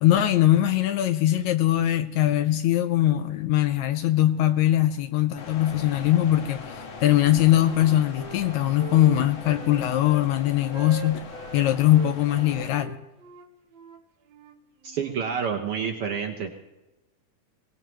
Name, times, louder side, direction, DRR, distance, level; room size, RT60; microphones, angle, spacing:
voice 1, 0.0-11.2 11.5-13.0, left 13 dB, 75° left, 9 dB, 1.8 m, -21 dB
sound 1, 5.4-12.7, left 4 dB, 55° left, 1.6 m, -41 dB
Wind instrument woodwind instrument, 6.1-6.9 7.2-10.3 10.7-12.2 12.7-15.2, right 4 dB, 90° right, 1.0 m, -42 dB
voice 2, 14.8-16.5, right 6 dB, 70° right, 2 dB, 1.4 m, -28 dB
23.0 x 18.0 x 3.1 m, 1.0 s
omnidirectional pair, 3.6 m